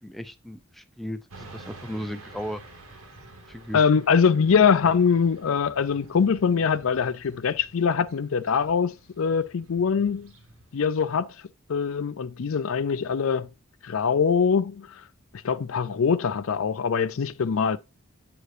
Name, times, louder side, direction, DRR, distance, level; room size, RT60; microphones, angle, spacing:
voice 1, 0.0-2.6 3.5-4.0, equal, ahead, 0.4 m, -36 dB
Motorcycle / Traffic noise roadway noise, 1.3-10.7, right 2 dB, 90° right, 2.0 m, -49 dB
voice 2, 3.7-10.3 10.7-11.3 11.7-13.5 13.8-15.0 15.4-17.8, left 6 dB, 75° left, 0.5 m, -23 dB
7.8 x 4.9 x 2.6 m
head